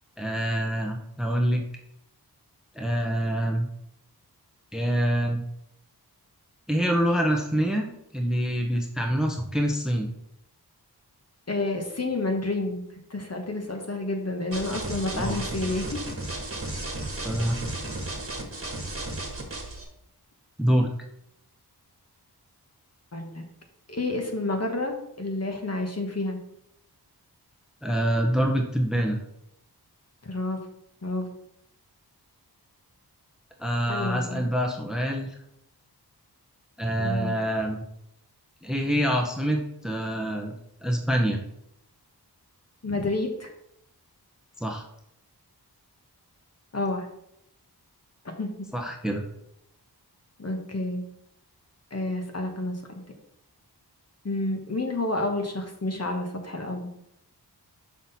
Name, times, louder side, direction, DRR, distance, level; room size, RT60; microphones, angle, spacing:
voice 1, 0.2-1.6 2.8-3.7 4.7-5.4 6.7-7.9 8.1-10.1 15.1-15.4 17.2-17.6 20.6-20.9 27.8-29.2 33.6-35.3 36.8-37.8 38.6-40.5 40.8-41.4 44.6-44.8 48.7-49.2, equal, ahead, 3 dB, 0.8 m, -25 dB
voice 2, 11.5-12.8 13.1-16.0 23.1-23.4 23.9-26.4 30.2-30.6 31.0-31.3 33.9-34.4 37.0-37.3 42.8-43.5 46.7-47.1 48.4-48.7 50.4-51.0 51.9-53.0 54.2-56.9, left 2 dB, 40° left, 3 dB, 1.2 m, -29 dB
sound 1, 14.5-19.8, right 2 dB, 35° right, 1.5 m, -34 dB
6.0 x 5.8 x 4.1 m, 0.77 s
wide cardioid pair, 85°, 40 cm